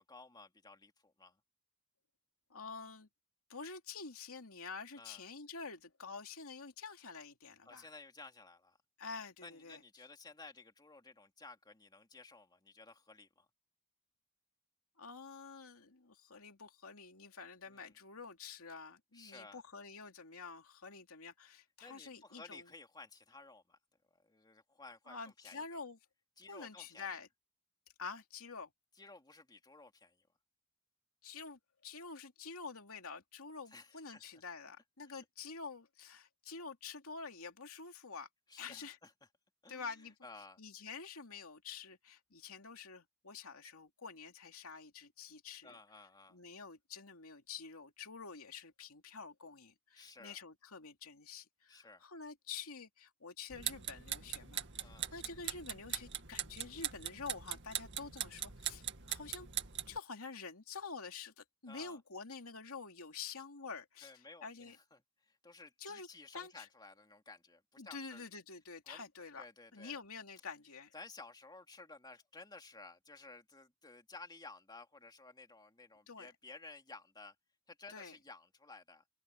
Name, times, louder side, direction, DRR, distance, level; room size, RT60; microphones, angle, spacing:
voice 1, 0.0-1.4 5.0-5.2 7.6-8.8 9.4-13.5 17.7-17.9 19.1-19.6 21.8-23.8 24.2-25.8 26.4-27.2 29.0-30.3 33.7-34.2 35.0-35.2 38.5-39.1 39.6-40.6 45.6-46.4 50.0-50.4 51.7-52.0 54.8-55.1 61.7-62.0 64.0-68.3 68.9-69.1 69.4-70.0 70.9-77.3 77.7-79.0, left 3 dB, 20° left, 2.5 m, -55 dB
voice 2, 2.5-3.1 3.5-7.9 9.0-9.8 15.0-22.7 25.1-26.0 26.5-27.3 28.0-28.7 31.2-38.3 38.6-39.0 39.7-40.1 40.6-45.8 46.3-59.5 59.9-64.1 64.4-64.8 65.8-66.1 66.3-66.7 67.8-69.4 69.7-70.9 76.1-76.3 77.9-78.2, left 5 dB, 75° left, 2.8 m, -48 dB
sound 1, 53.5-60.0, right 11 dB, 55° right, 2.1 m, -41 dB
head